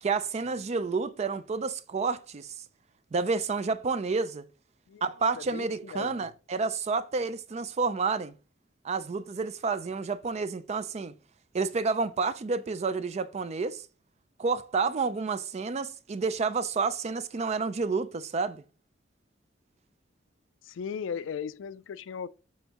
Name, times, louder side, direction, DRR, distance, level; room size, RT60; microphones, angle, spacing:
voice 1, 0.0-2.5 3.1-4.4 5.0-8.3 8.8-11.1 11.5-13.8 14.4-18.6, right 4 dB, 35° right, 0.4 m, -30 dB
voice 2, 5.4-6.1 20.6-22.3, left 6 dB, 85° left, 0.4 m, -37 dB
7.3 x 4.4 x 2.9 m
head